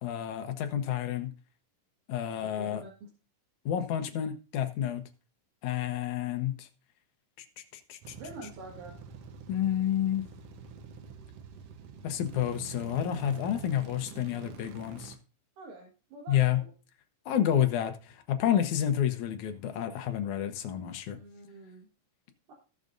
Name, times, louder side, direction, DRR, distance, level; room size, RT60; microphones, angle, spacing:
voice 1, 0.0-1.3 2.1-2.8 3.7-5.0 5.6-6.7 7.6-7.7 7.9-8.1 9.5-10.2 12.0-15.2 16.3-16.6 17.3-21.2, left 10 dB, 70° left, 2.3 m, -29 dB
voice 2, 2.4-3.1 8.1-9.0 15.6-16.7 18.4-18.5 21.1-21.9 22.5-22.6, right 2 dB, 85° right, 3.3 m, -46 dB
sound 1, 8.0-15.2, right 6 dB, 65° right, 1.7 m, -46 dB
18.5 x 6.5 x 2.6 m
omnidirectional pair, 3.7 m